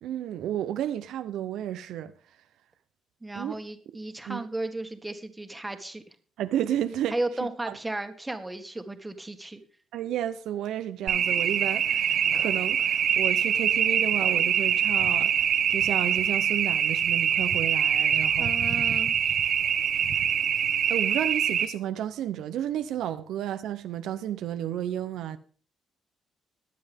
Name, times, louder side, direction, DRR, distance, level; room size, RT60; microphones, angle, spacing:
voice 1, 0.0-2.1 3.3-3.6 4.3-4.5 6.4-7.1 7.7-7.8 9.9-15.4 15.7-18.8 20.9-25.4, right 11 dB, 80° right, 0.7 m, -32 dB
voice 2, 3.2-6.0 7.1-9.6 18.4-19.2, right 2 dB, 15° right, 1.8 m, -34 dB
house alarm, 11.1-21.7, right 8 dB, 65° right, 1.3 m, -24 dB
22.0 x 7.8 x 3.6 m
cardioid pair, 90°, 0 cm